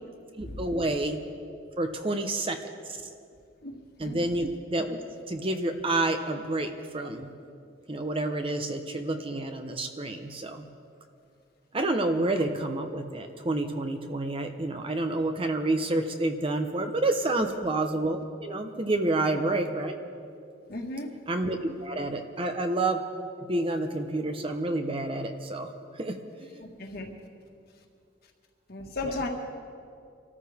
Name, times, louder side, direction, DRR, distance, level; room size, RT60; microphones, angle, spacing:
voice 1, 0.4-1.2 1.8-2.6 4.0-5.0 5.3-7.3 7.9-10.6 11.7-19.9 21.3-23.0 23.4-25.7 26.0-26.6 29.0-29.1, right 2 dB, 30° right, 6 dB, 0.8 m, -29 dB
voice 2, 4.0-4.3 19.1-19.4 20.7-21.1 26.8-27.1 28.7-29.3, left 2 dB, 55° left, 1 dB, 1.8 m, -35 dB
25.5 x 13.5 x 3.6 m, 2.4 s
head